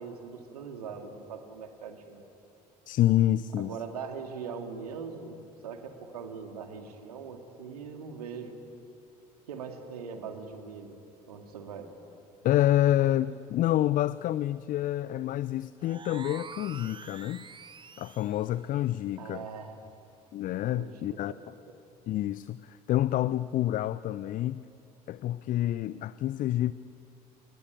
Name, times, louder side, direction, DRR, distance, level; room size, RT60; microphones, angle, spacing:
voice 1, 0.0-2.2 3.6-8.6 9.5-11.0 11.3-11.9 19.2-19.8 20.8-21.4 21.7-21.8, right 6 dB, 75° right, 5 dB, 2.3 m, -41 dB
voice 2, 2.9-3.7 12.4-17.4 18.0-19.4 20.3-21.3 22.1-24.6 25.1-26.7, left 13 dB, 45° left, 17 dB, 0.6 m, -28 dB
sound 1, 15.8-18.5, right 5 dB, 25° right, 1.1 m, -46 dB
28.0 x 21.5 x 9.3 m, 2.6 s
figure-of-eight pair, 55°, 20 cm